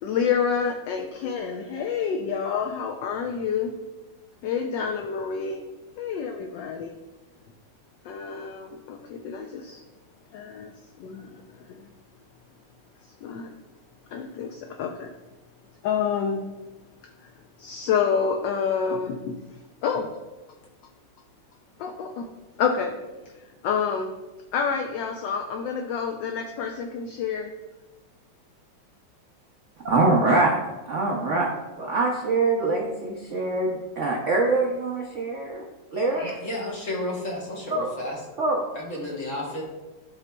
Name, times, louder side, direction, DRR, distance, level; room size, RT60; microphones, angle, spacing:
voice 1, 0.0-3.7 4.4-5.6 6.0-6.9 8.0-9.8 10.3-10.7 11.0-11.9 13.0-13.5 14.1-15.1 15.8-16.5 17.2-17.3 17.6-19.4 19.8-20.1 21.8-22.3 22.6-22.9 23.3-24.1 24.5-27.5, left 6 dB, 75° left, 3 dB, 1.1 m, -28 dB
voice 2, 29.8-30.5 30.9-31.5 31.8-35.6 35.9-36.4 37.7-37.9 38.4-38.6, right 3 dB, 75° right, -1 dB, 0.6 m, -24 dB
voice 3, 36.4-38.2 38.7-39.6, left 1 dB, 45° left, -3 dB, 1.3 m, -32 dB
11.5 x 3.9 x 2.2 m, 1.1 s
omnidirectional pair, 2.3 m